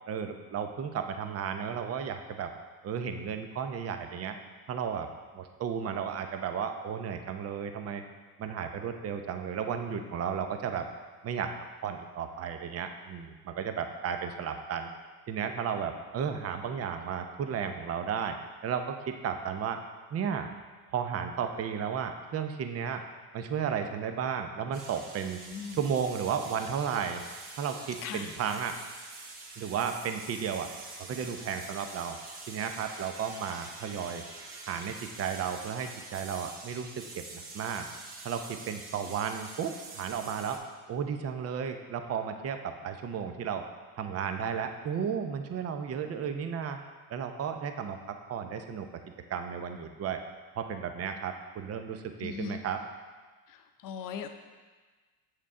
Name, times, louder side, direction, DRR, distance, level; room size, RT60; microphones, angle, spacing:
voice 1, 0.1-2.5 2.8-4.4 4.7-8.0 8.4-10.9 11.2-11.5 11.8-14.9 15.3-18.4 18.6-19.8 20.1-20.5 20.9-23.0 23.3-25.4 25.7-27.2 27.5-28.8 29.6-30.7 31.0-32.2 32.5-34.2 34.7-37.9 38.2-40.6 40.9-43.7 44.0-46.8 47.1-48.9 49.3-50.2 50.5-52.8, right 7 dB, 30° right, 6 dB, 0.7 m, -34 dB
sound 1, 24.7-40.6, right 3 dB, 45° right, 2.2 m, -46 dB
voice 2, 25.4-25.8 28.0-28.3 52.2-52.6 53.5-54.3, left 7 dB, 40° left, 7 dB, 0.8 m, -39 dB
7.3 x 6.5 x 3.7 m, 1.4 s
hypercardioid pair, 90°, 50 cm